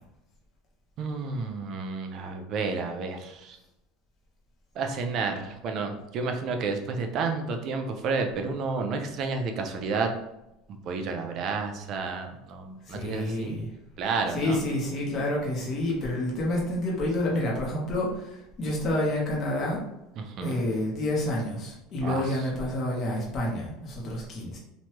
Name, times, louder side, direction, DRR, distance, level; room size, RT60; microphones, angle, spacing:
voice 1, 1.0-3.6 4.8-10.1 10.9-13.6 14.0-14.6 20.2-20.6 22.0-22.4, right 4 dB, 45° right, 4 dB, 0.5 m, -31 dB
voice 2, 12.9-13.7 14.3-19.8 20.4-24.6, left 1 dB, 35° left, -3 dB, 0.7 m, -29 dB
3.0 x 2.2 x 2.9 m, 0.90 s
cardioid pair, 145°, 0 cm